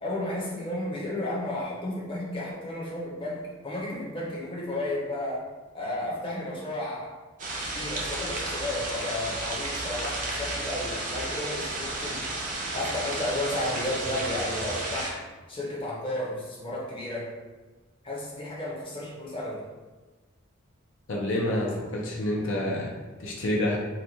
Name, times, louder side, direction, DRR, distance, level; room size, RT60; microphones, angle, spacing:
voice 1, 0.0-5.4 5.7-7.1 7.6-12.2 12.7-15.2 15.5-17.3 18.0-19.6, left 1 dB, 25° left, -4 dB, 0.7 m, -33 dB
sound 1, 7.4-15.1, right 2 dB, 40° right, 0.6 m, -32 dB
voice 2, 21.1-22.9 23.2-23.8, left 1 dB, 65° left, -2 dB, 0.5 m, -28 dB
2.9 x 2.2 x 3.9 m, 1.2 s
head